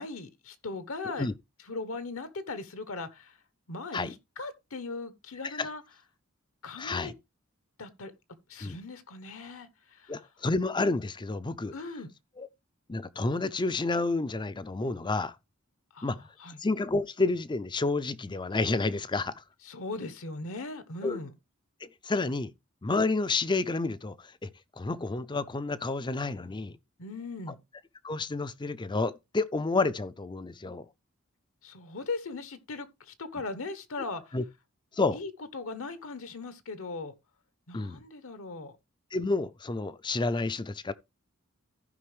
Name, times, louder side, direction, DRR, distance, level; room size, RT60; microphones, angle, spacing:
voice 1, 0.0-1.3 1.6-3.4 3.7-5.8 6.6-7.1 7.8-8.1 8.5-10.2 11.7-12.1 15.9-16.1 16.4-16.6 19.6-21.3 27.0-27.6 31.6-34.4 35.1-37.1 37.7-38.8, left 3 dB, 70° left, 1.1 m, -39 dB
voice 2, 6.8-7.1 8.6-8.8 10.1-11.7 12.4-12.5 12.9-15.3 16.0-16.2 16.6-19.3 21.0-21.2 21.8-22.5 22.8-24.5 24.8-26.8 28.0-30.9 34.3-34.4 34.9-35.2 37.7-38.0 39.1-40.9, left 3 dB, 20° left, 0.5 m, -30 dB
14.5 x 5.3 x 3.2 m
head